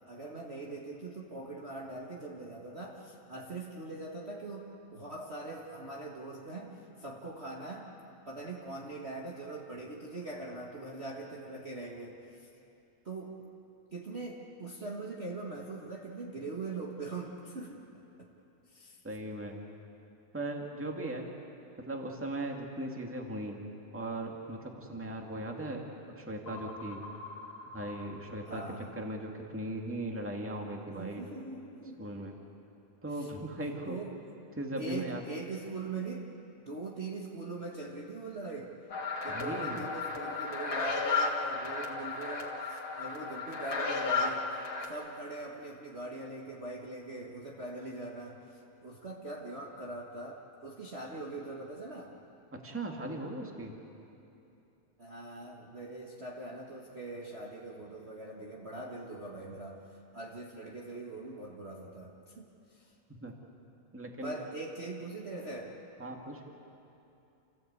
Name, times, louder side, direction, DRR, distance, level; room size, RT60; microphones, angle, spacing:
voice 1, 0.1-7.9 8.2-12.5 13.0-13.4 13.9-17.8 18.2-18.3 18.7-19.0 28.4-28.9 30.9-32.0 33.1-33.3 33.8-34.2 34.8-36.3 36.6-38.7 39.2-44.6 44.9-52.1 55.0-62.9 64.2-65.7, right 2 dB, 55° right, -3 dB, 0.7 m, -42 dB
voice 2, 19.0-19.6 20.3-21.3 21.8-23.6 23.9-27.0 27.7-28.6 28.9-31.2 32.0-32.4 33.0-34.0 34.6-35.2 39.3-39.8 52.5-53.8 63.2-63.3 63.9-64.4 66.0-66.4, right 1 dB, 5° right, 1 dB, 1.1 m, -38 dB
sound 1, 26.5-29.0, left 2 dB, 20° left, 3.0 m, -47 dB
sound 2, 38.9-44.8, left 4 dB, 40° left, 2.4 m, -33 dB
28.5 x 16.5 x 8.3 m, 2.8 s
omnidirectional pair, 3.8 m